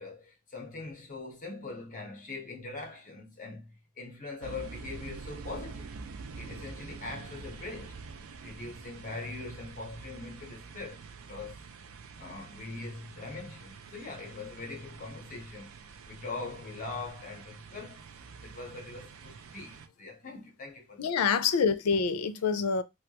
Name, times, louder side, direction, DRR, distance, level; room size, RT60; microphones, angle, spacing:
voice 1, 0.0-3.7 4.0-5.9 6.4-8.0 8.4-11.6 12.2-18.0 18.4-21.1, left 3 dB, 35° left, 0.9 m, -42 dB
sound 1, 4.4-19.9, right 4 dB, 70° right, 0.4 m, -46 dB
voice 2, 21.0-22.8, left 5 dB, 85° left, 0.4 m, -26 dB
3.3 x 2.3 x 2.8 m
head